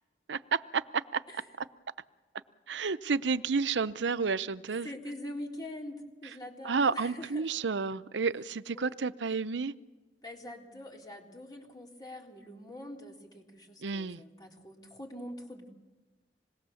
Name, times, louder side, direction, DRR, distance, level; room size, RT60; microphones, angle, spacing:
voice 1, 0.3-1.2 2.7-4.9 6.6-9.7 13.8-14.2, right 5 dB, 80° right, 0.7 m, -31 dB
voice 2, 4.8-7.5 8.8-8.9 10.2-15.7, left 1 dB, 20° left, 3.6 m, -44 dB
26.5 x 20.5 x 7.1 m
head